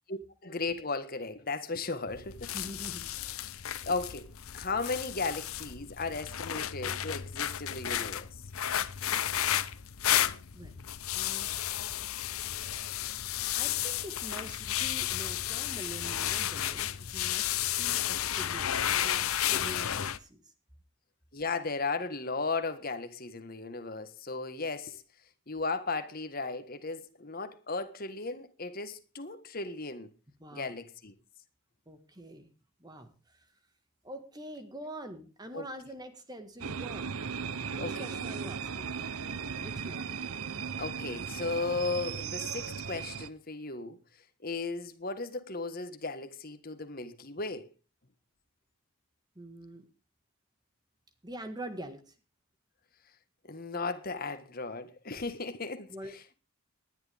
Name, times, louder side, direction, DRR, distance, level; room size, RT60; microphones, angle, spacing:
voice 1, 0.1-2.5 3.8-8.3 21.3-25.0 25.5-30.1 30.5-31.1 35.5-35.6 37.8-38.1 40.8-44.0 44.4-47.7 53.5-56.2, left 3 dB, 40° left, 1.5 m, -36 dB
sound 1, 2.1-20.2, left 11 dB, 80° left, 0.8 m, -32 dB
voice 2, 2.5-3.3 10.2-10.8 11.1-11.5 13.5-20.4 30.4-30.7 31.9-32.5 32.8-33.5 34.0-37.2 37.6-39.0 39.6-40.2 49.3-49.9 51.2-52.1 55.9-56.2, right 1 dB, 20° right, 1.7 m, -45 dB
sound 2, 36.6-43.3, right 6 dB, 85° right, 0.9 m, -37 dB
19.5 x 11.0 x 3.5 m
head